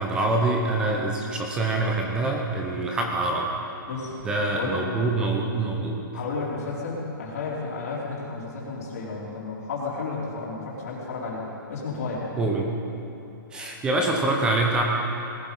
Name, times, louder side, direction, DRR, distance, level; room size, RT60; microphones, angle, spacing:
voice 1, 0.0-3.5 4.2-6.0 12.4-12.7 13.5-14.8, right 2 dB, 5° right, 0 dB, 0.8 m, -25 dB
voice 2, 4.5-5.0 6.1-12.3, left 3 dB, 45° left, -6 dB, 4.3 m, -32 dB
19.5 x 13.5 x 5.6 m, 2.9 s
hypercardioid pair, 175°, 12 cm